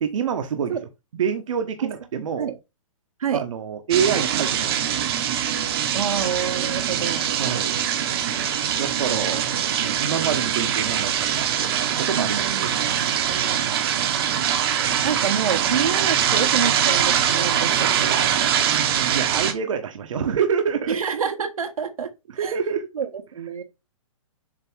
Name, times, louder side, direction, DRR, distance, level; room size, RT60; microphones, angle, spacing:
voice 1, 0.0-0.8 1.1-2.6 3.3-4.8 7.4-7.8 8.7-9.4 9.8-13.2 18.6-21.3 22.3-22.9, right 7 dB, 65° right, 1.2 m, -27 dB
sound 1, 3.9-19.5, right 9 dB, 45° right, 1.0 m, -23 dB
voice 2, 5.9-7.3 12.1-13.7 15.0-18.2 20.9-22.1 22.3-22.5 22.9-23.6, right 7 dB, 85° right, 1.3 m, -28 dB
7.4 x 3.0 x 4.6 m
hypercardioid pair, 155°, 18 cm